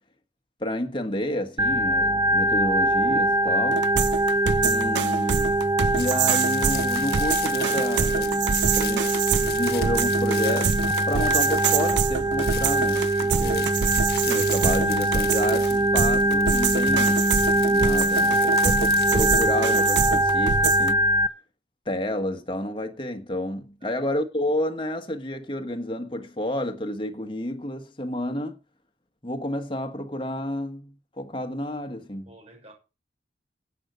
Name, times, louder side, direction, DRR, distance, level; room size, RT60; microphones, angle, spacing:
voice 1, 0.6-3.9 4.6-5.6 5.9-9.1 9.4-10.8 11.0-13.7 14.2-17.3 17.5-21.1 21.8-28.6 29.2-32.3, left 1 dB, 30° left, 1.5 m, -30 dB
Organ, 1.6-21.3, right 1 dB, 20° right, 0.6 m, -23 dB
sound 1, 3.7-20.9, right 7 dB, 75° right, 0.5 m, -26 dB
voice 2, 4.5-5.0 23.8-24.1 32.3-32.7, right 2 dB, 35° right, 6.5 m, -49 dB
sound 2, 6.0-12.0 12.3-19.9, left 11 dB, 55° left, 1.5 m, -38 dB
11.0 x 8.1 x 6.2 m
head